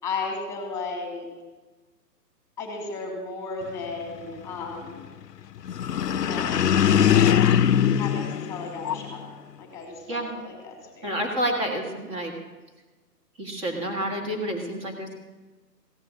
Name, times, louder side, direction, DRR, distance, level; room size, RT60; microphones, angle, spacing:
voice 1, 0.0-1.3 2.6-5.1 6.1-6.7 8.0-11.2, left 4 dB, 5° left, 1 dB, 2.9 m, -35 dB
sound 1, 5.7-9.2, left 9 dB, 70° left, 0.7 m, -21 dB
voice 2, 11.0-12.3 13.4-15.1, right 1 dB, 20° right, 2 dB, 2.0 m, -29 dB
16.0 x 6.5 x 9.6 m, 1.2 s
hypercardioid pair, 155°, 49 cm